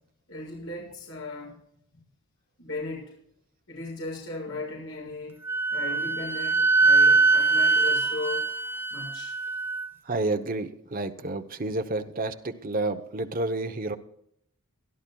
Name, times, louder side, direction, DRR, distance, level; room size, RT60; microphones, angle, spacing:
voice 1, 0.3-1.6 2.6-3.1 3.7-5.4 5.7-8.4 8.9-9.3, left 2 dB, 65° left, -3 dB, 6.4 m, -36 dB
Wind instrument woodwind instrument, 5.4-9.9, right 3 dB, 10° right, 0.4 m, -23 dB
voice 2, 10.0-14.0, right 2 dB, 40° right, 7 dB, 0.9 m, -30 dB
23.0 x 12.0 x 2.3 m, 0.73 s
head